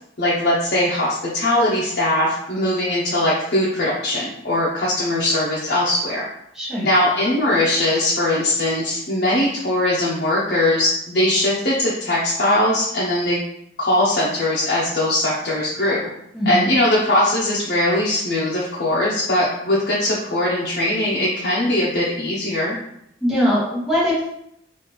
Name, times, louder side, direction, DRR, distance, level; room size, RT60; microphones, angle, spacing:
voice 1, 0.2-6.3 6.8-13.4 13.8-16.0 16.5-22.8, left 1 dB, 60° left, -6 dB, 0.6 m, -20 dB
voice 2, 6.5-6.9 16.3-16.7 23.2-24.3, equal, 5° right, -8 dB, 1.1 m, -21 dB
3.2 x 2.4 x 3.1 m, 0.75 s
head